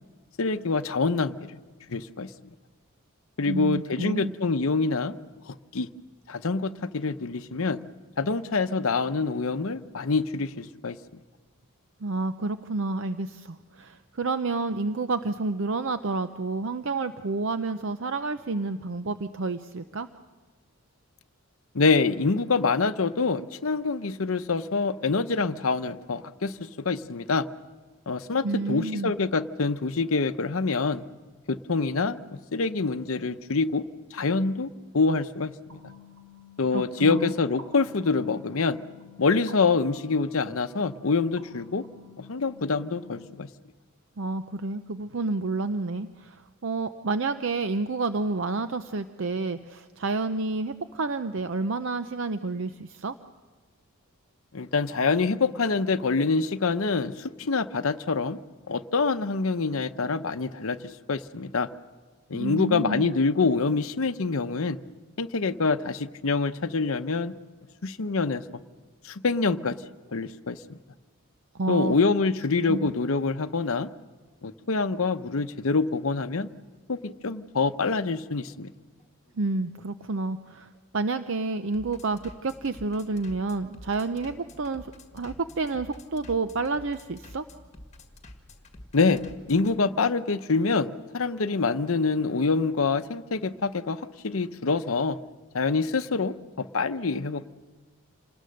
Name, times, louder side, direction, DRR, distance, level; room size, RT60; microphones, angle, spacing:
voice 1, 0.4-1.6 1.9-2.3 3.4-5.1 5.5-5.9 6.3-7.8 8.2-11.0 21.7-27.5 28.1-31.0 31.5-33.9 34.1-34.7 34.9-35.5 36.6-38.8 39.2-41.8 42.2-43.5 54.5-58.4 58.7-60.8 61.1-61.7 62.3-64.8 65.2-67.3 67.8-68.4 69.0-69.8 70.1-70.8 71.7-73.9 74.4-76.5 76.9-78.7 88.9-95.2 95.5-97.5, left 4 dB, 70° left, 9 dB, 0.7 m, -26 dB
voice 2, 3.5-4.3 12.0-20.1 28.4-29.1 36.7-37.3 44.2-53.2 62.3-63.1 71.5-71.9 72.7-72.9 79.4-87.4, right 3 dB, 60° right, 10 dB, 0.6 m, -30 dB
sound 1, 35.7-43.3, left 3 dB, 85° right, 4.1 m, -51 dB
Bass drum, 74.0-89.7, left 1 dB, 30° left, 1.8 m, -49 dB
27.0 x 20.0 x 6.5 m, 1.4 s
head